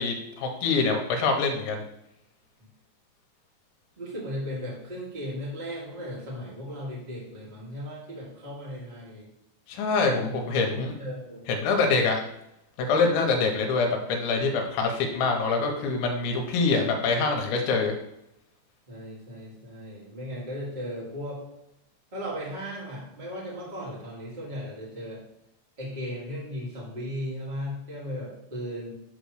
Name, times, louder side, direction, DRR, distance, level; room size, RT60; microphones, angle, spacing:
voice 1, 0.0-1.8 9.7-10.9 11.6-12.2 12.8-17.9, left 4 dB, 85° left, 2 dB, 3.3 m, -25 dB
voice 2, 4.0-9.3 10.1-10.3 10.6-11.4 18.9-21.4 22.1-25.2 25.8-28.9, equal, 40° right, -6 dB, 0.6 m, -36 dB
8.7 x 3.1 x 6.4 m, 0.82 s
omnidirectional pair, 5.3 m